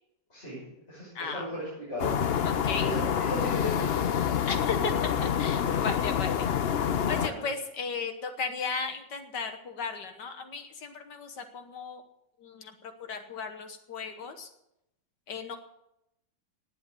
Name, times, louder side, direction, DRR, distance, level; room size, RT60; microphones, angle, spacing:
voice 1, 0.3-2.2 2.8-4.1 7.0-7.5, left 1 dB, 35° left, -7 dB, 7.1 m, -37 dB
voice 2, 1.2-1.5 2.4-2.9 4.5-6.5 7.1-12.0 12.4-14.5 15.3-15.6, left 5 dB, 70° left, 7 dB, 1.8 m, -35 dB
sound 1, 2.0-7.3, left 8 dB, 90° left, 0.5 m, -27 dB
19.0 x 8.1 x 6.7 m, 0.83 s
omnidirectional pair, 2.0 m